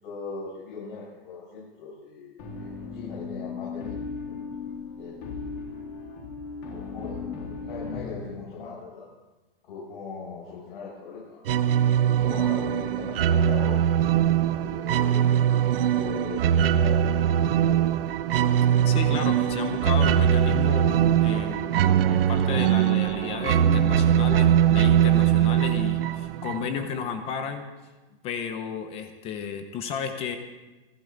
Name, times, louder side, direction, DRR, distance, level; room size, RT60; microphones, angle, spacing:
voice 1, 0.0-4.0 4.2-4.4 5.0-5.2 6.7-9.0 9.6-11.4 12.2-15.4 15.9-17.9, left 4 dB, 65° left, -6 dB, 6.7 m, -40 dB
sound 1, 2.4-8.0, left 4 dB, 45° left, 4.2 m, -36 dB
sound 2, 11.4-26.9, right 10 dB, 75° right, 0.8 m, -22 dB
voice 2, 18.8-27.6 28.2-30.4, left 7 dB, 20° left, 8 dB, 0.8 m, -33 dB
26.5 x 11.5 x 3.9 m, 1.2 s
supercardioid pair, 165°, 29 cm